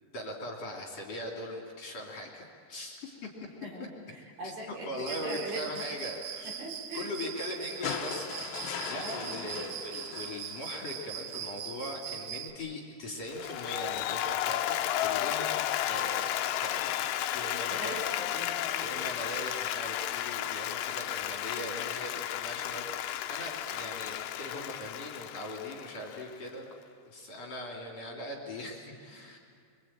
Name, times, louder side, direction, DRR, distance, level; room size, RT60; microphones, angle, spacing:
voice 1, 0.1-3.3 4.9-6.7 6.9-8.3 8.8-15.6 15.9-17.9 18.8-26.7 27.1-29.4, left 1 dB, 45° left, -1 dB, 3.8 m, -40 dB
voice 2, 3.6-5.7 6.6-7.1 8.9-9.5 17.7-19.0, right 1 dB, 60° right, -1 dB, 5.8 m, -41 dB
Cricket, 5.1-12.5, right 9 dB, 90° right, 3.3 m, -41 dB
sound 1, 7.8-11.1 12.5-12.6, left 7 dB, 65° left, 2.8 m, -39 dB
Applause, 13.3-26.5, left 12 dB, 90° left, 3.1 m, -33 dB
26.0 x 24.0 x 8.9 m, 2.2 s
omnidirectional pair, 4.7 m